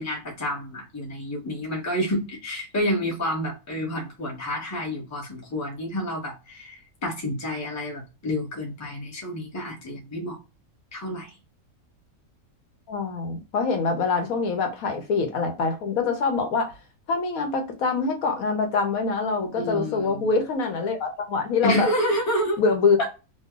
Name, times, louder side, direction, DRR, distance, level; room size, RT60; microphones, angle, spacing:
voice 1, 0.0-10.4 10.9-11.3 19.6-20.3 21.6-22.6, equal, 15° left, 0.7 m, -29 dB
voice 2, 12.9-16.7 17.1-21.9 22.6-23.1, left 4 dB, 75° left, 1.2 m, -24 dB
3.0 x 2.1 x 3.5 m
omnidirectional pair, 1.5 m